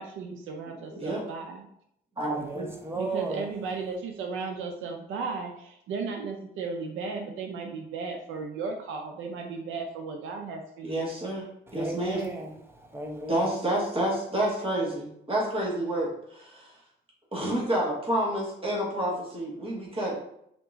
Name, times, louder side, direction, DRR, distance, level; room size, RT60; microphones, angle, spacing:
voice 1, 0.0-1.7 3.0-11.0, right 4 dB, 90° right, 0.5 m, -35 dB
voice 2, 0.9-1.2 2.2-2.7 10.8-11.5 11.7-12.2 13.3-16.7 17.3-20.1, right 1 dB, 25° right, 1.5 m, -29 dB
voice 3, 2.3-3.6 11.7-13.5, right 2 dB, 10° right, 0.8 m, -35 dB
3.7 x 2.9 x 3.6 m
cardioid pair, 90°, 20 cm